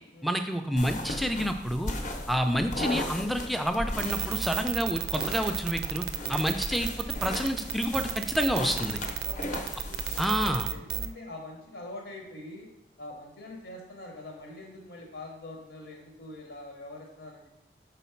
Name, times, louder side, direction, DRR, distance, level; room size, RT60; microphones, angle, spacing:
voice 1, 0.2-1.9 2.3-9.0 10.2-10.7, equal, ahead, 6 dB, 0.3 m, -29 dB
sound 1, 0.8-10.6, left 1 dB, 45° left, 0.7 m, -37 dB
sound 2, 4.0-11.1, right 9 dB, 70° right, 0.4 m, -32 dB
voice 2, 9.2-12.7 13.0-17.5, left 2 dB, 75° left, 1 dB, 0.9 m, -44 dB
4.5 x 4.1 x 5.7 m, 0.93 s
head